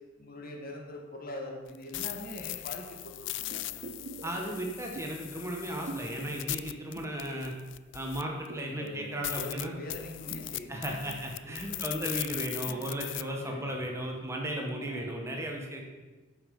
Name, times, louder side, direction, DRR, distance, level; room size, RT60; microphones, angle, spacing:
voice 1, 0.2-3.7 8.7-11.2 11.5-12.1 12.6-12.9 13.2-13.8 14.8-15.1, left 1 dB, 50° left, 2 dB, 1.3 m, -43 dB
sound 1, 1.7-8.5 8.9-9.0 9.2-13.2, left 17 dB, 65° left, 0.3 m, -39 dB
sound 2, 3.5-7.9 8.2-11.7 12.1-12.2, right 2 dB, 55° right, 0.7 m, -46 dB
voice 2, 4.2-7.5 7.9-9.7 10.7-15.8, right 1 dB, 15° right, 0 dB, 1.2 m, -35 dB
8.1 x 5.7 x 5.4 m, 1.2 s
head